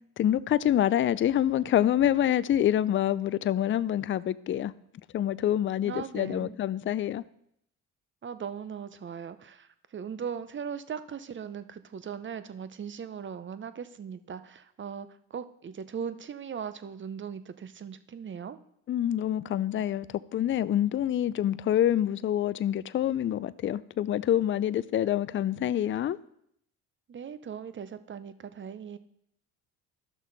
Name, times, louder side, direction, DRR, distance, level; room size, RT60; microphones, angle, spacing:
voice 1, 0.2-4.7 5.1-7.2 18.9-20.1 20.3-26.2, left 11 dB, 35° left, 0.4 m, -26 dB
voice 2, 5.8-6.6 8.2-18.6 27.1-29.0, right 7 dB, 35° right, 0.7 m, -39 dB
12.0 x 6.3 x 4.0 m
supercardioid pair, 75°, 35 cm